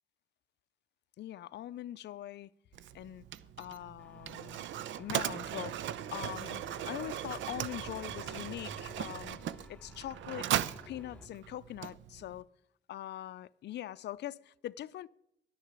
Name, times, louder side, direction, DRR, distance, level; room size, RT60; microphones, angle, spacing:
voice 1, 1.2-2.5 2.9-3.2 3.6-4.6 5.0-9.4 9.7-10.5 10.9-12.5 12.9-15.1, left 13 dB, 60° left, 0.5 m, -42 dB
Mechanisms, 2.7-12.4, right 11 dB, 70° right, 0.6 m, -38 dB
sound 1, 4.0-11.3, left 2 dB, 5° left, 1.2 m, -55 dB
11.5 x 6.6 x 8.7 m
cardioid pair, 90°, 20 cm